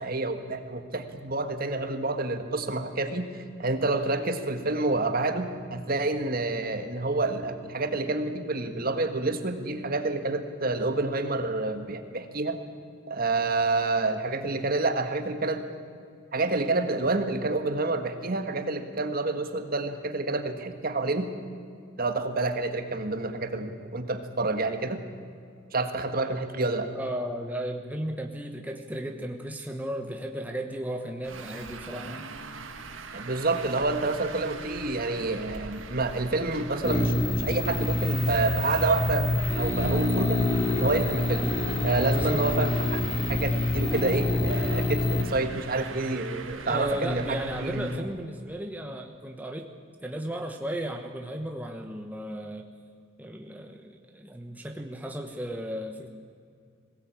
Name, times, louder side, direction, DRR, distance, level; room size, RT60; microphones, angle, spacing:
voice 1, 0.0-12.6 13.1-15.6 16.3-21.3 22.0-25.0 25.7-26.9 33.1-40.4 40.7-41.5 41.8-43.0 43.3-47.9, right 2 dB, 45° right, 7 dB, 1.6 m, -28 dB
voice 2, 26.9-32.3 42.1-42.5 46.6-49.7 50.0-52.7 53.2-56.1, right 1 dB, 10° right, 3 dB, 1.1 m, -35 dB
Traffic noise roadway noise, 31.2-48.0, right 3 dB, 80° right, 1.6 m, -42 dB
sound 1, 36.8-45.2, left 2 dB, 35° left, 3.3 m, -26 dB
21.5 x 17.5 x 8.8 m, 2.3 s
head